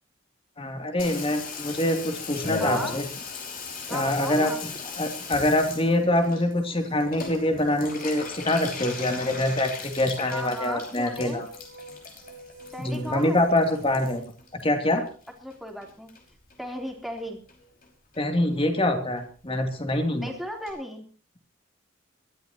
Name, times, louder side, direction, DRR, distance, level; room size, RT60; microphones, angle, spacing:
voice 1, 0.6-3.1 3.9-4.7 5.0-11.5 12.8-14.2 14.6-15.0 18.2-20.3, left 1 dB, 30° left, 5 dB, 2.9 m, -25 dB
Water tap faucet / Bathtub (filling or washing), 1.0-15.5 15.8-16.6 16.9-17.0 17.2-17.3 17.5-17.9 18.1-18.2 18.5-18.6 18.8-18.9 19.2-19.3 19.5-19.6 19.9-20.0 20.3-20.4 20.7-20.8, left 4 dB, 45° left, 5.4 m, -38 dB
voice 2, 2.6-3.0 3.9-4.6 10.3-11.4 12.7-13.4 15.4-16.1 16.6-17.4 20.2-21.0, equal, ahead, 1 dB, 3.5 m, -35 dB
sound 1, 6.5-14.2, right 2 dB, 70° right, 4.1 m, -46 dB
23.0 x 14.0 x 3.0 m, 0.41 s
head